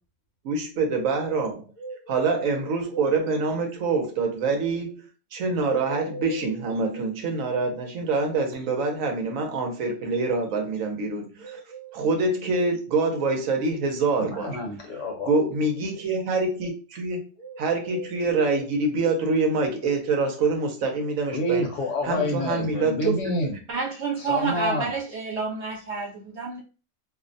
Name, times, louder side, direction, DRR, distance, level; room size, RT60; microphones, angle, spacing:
voice 1, 0.4-1.7 2.1-5.1 5.3-11.6 11.9-14.6 15.2-17.3 17.6-21.6 22.0-23.2, right 3 dB, 75° right, 3 dB, 1.0 m, -25 dB
sound 1, 1.7-3.2 5.8-7.2 11.4-12.8 17.4-18.7, right 2 dB, 30° left, 0.4 m, -40 dB
voice 2, 14.2-15.4 21.3-23.5 24.2-24.9, left 1 dB, 65° left, 2 dB, 1.0 m, -28 dB
voice 3, 23.7-26.6, right 5 dB, 55° right, -4 dB, 1.1 m, -29 dB
2.6 x 2.1 x 2.5 m, 0.33 s
omnidirectional pair, 1.5 m